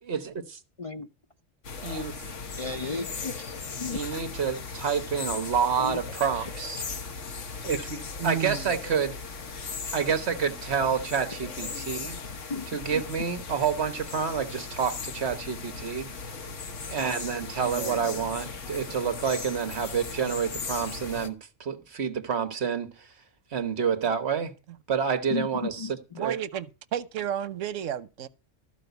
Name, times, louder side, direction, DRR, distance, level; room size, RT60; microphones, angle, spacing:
voice 1, 0.0-0.6 1.8-2.1 3.9-6.8 7.6-9.2 9.9-12.2 12.7-16.1 16.9-23.1 23.5-24.5 24.9-25.9 26.2-26.4, right 6 dB, 60° right, 1.4 m, -28 dB
voice 2, 0.8-1.1 2.6-3.4 3.8-4.0 5.8-6.3 12.5-13.0 25.3-26.2, left 4 dB, 40° left, 0.5 m, -34 dB
sound 1, 1.6-21.3, left 4 dB, 75° left, 1.6 m, -38 dB
voice 3, 8.2-8.7 17.6-18.3 26.2-26.7 26.9-28.3, right 10 dB, 90° right, 1.1 m, -32 dB
14.0 x 5.0 x 8.0 m
omnidirectional pair, 1.3 m